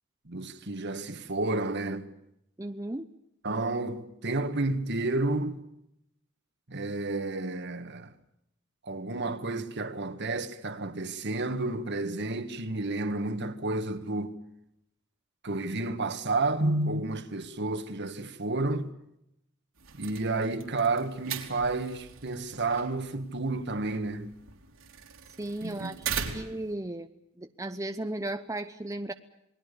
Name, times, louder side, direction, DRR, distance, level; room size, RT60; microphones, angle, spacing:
voice 1, 0.3-2.1 3.4-5.6 6.7-8.1 8.8-14.4 15.4-18.9 19.9-24.3 25.6-25.9 26.3-26.4, right 2 dB, 55° right, 1.8 m, -31 dB
voice 2, 2.6-3.1 25.4-26.1 26.3-27.1 27.4-29.1, right 1 dB, 15° right, 0.8 m, -35 dB
sound 1, 19.8-26.7, right 7 dB, 80° right, 3.4 m, -40 dB
28.0 x 20.5 x 6.8 m
head